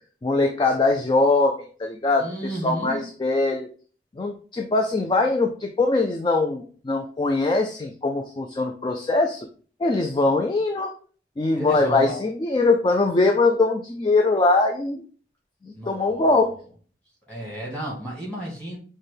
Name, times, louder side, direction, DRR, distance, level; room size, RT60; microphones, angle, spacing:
voice 1, 0.2-3.7 4.2-9.5 9.8-10.9 11.4-15.0 15.6-16.6, left 3 dB, 25° left, 4 dB, 0.3 m, -22 dB
voice 2, 2.2-3.0 11.6-12.1 15.7-16.4 17.3-18.8, right 1 dB, 5° left, -5 dB, 1.7 m, -33 dB
5.6 x 2.1 x 3.3 m, 0.42 s
head